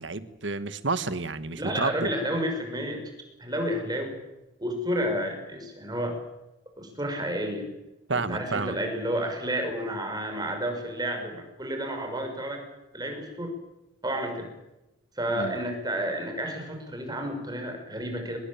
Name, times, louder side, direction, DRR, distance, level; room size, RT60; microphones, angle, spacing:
voice 1, 0.0-2.1 8.1-8.7 15.3-15.6, right 3 dB, 70° right, 13 dB, 1.5 m, -30 dB
voice 2, 1.5-3.0 3.4-4.2 4.6-6.2 6.8-7.7 8.1-12.6 12.9-13.5 14.0-14.5 15.2-18.4, equal, 20° right, 4 dB, 6.1 m, -31 dB
23.5 x 21.0 x 8.8 m, 0.98 s
head